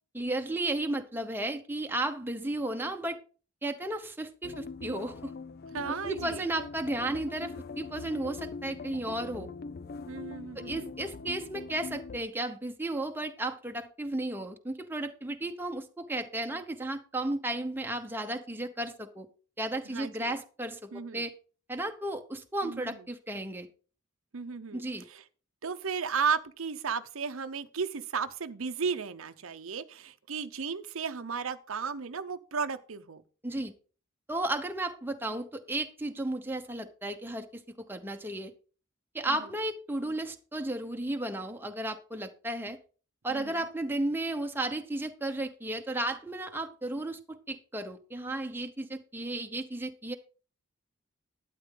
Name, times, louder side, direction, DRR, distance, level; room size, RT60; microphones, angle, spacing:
voice 1, 0.1-3.2 3.6-5.3 5.9-9.5 10.5-19.3 19.6-21.3 21.7-23.7 24.7-25.0 33.4-33.7 34.3-38.5 39.1-42.8 43.2-50.2, right 1 dB, 10° right, 1.0 m, -34 dB
sound 1, 4.4-12.2, left 4 dB, 50° left, 0.5 m, -42 dB
voice 2, 5.7-6.4 10.1-10.9 19.8-20.3 20.9-21.2 22.6-23.0 24.3-24.8 25.1-25.2 25.6-33.2 39.3-39.4 43.3-43.6, right 6 dB, 80° right, 0.8 m, -34 dB
12.0 x 9.2 x 3.8 m
head